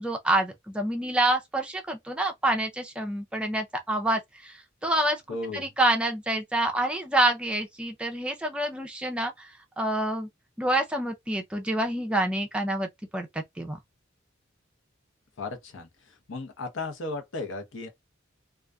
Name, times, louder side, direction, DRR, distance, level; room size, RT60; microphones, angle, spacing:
voice 1, 0.0-4.6 4.8-5.2 5.5-9.5 9.8-10.3 10.6-13.8, right 1 dB, 5° right, 0.3 m, -27 dB
voice 2, 5.3-5.7 15.4-17.9, left 2 dB, 85° left, 0.8 m, -35 dB
2.4 x 2.3 x 2.2 m
head